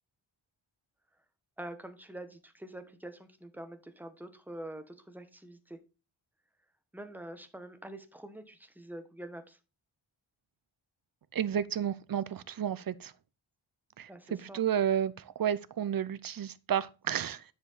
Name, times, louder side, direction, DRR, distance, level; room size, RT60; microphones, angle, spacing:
voice 1, 1.6-5.8 6.9-9.6 14.1-14.6, right 1 dB, 5° right, 1.0 m, -45 dB
voice 2, 11.3-13.1 14.0-17.4, right 9 dB, 45° right, 0.6 m, -32 dB
10.0 x 5.0 x 4.0 m
wide cardioid pair, 150°, 48 cm